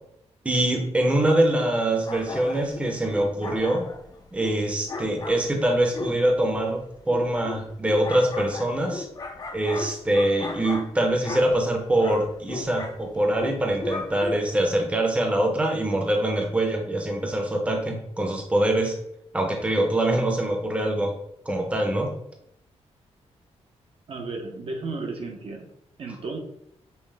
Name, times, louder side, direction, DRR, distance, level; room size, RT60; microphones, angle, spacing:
voice 1, 0.4-3.8 4.3-9.1 9.5-18.9 19.3-21.1 21.5-22.1, right 1 dB, 10° right, 2 dB, 0.6 m, -24 dB
sound 1, 2.0-14.6, left 3 dB, 35° left, 0.5 m, -37 dB
voice 2, 24.1-25.7 26.0-26.4, right 3 dB, 55° right, 2 dB, 0.7 m, -33 dB
5.5 x 2.0 x 3.3 m, 0.76 s
wide cardioid pair, 135°, 12 cm